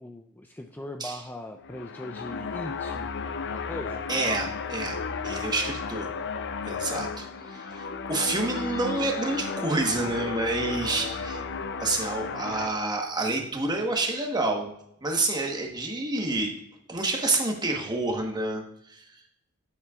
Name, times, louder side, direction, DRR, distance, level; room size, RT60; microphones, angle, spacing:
voice 1, 0.0-3.1 3.5-4.1, left 1 dB, 10° left, 4 dB, 0.4 m, -39 dB
evil string, 1.6-12.7, left 5 dB, 55° left, 0.5 m, -34 dB
voice 2, 4.1-5.0 5.2-6.1 6.7-11.4 11.8-14.7 15.0-16.6 16.9-18.6 18.9-19.0, right 2 dB, 20° right, 2 dB, 1.3 m, -28 dB
9.4 x 7.8 x 2.4 m, 0.76 s
head